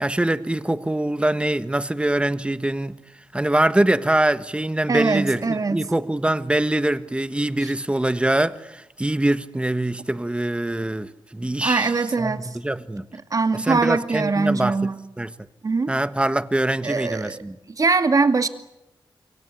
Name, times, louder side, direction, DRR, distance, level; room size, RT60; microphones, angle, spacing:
voice 1, 0.0-3.0 3.3-11.9 12.2-13.1 13.5-14.8 15.2-15.3 15.9-17.6, right 1 dB, 15° right, 1.4 m, -23 dB
voice 2, 4.9-5.8 7.6-7.7 11.6-12.5 13.1-15.0 15.6-15.9 16.8-17.4 17.8-18.5, right 4 dB, 45° right, 2.4 m, -22 dB
27.5 x 24.0 x 8.5 m
cardioid pair, 75°, 8 cm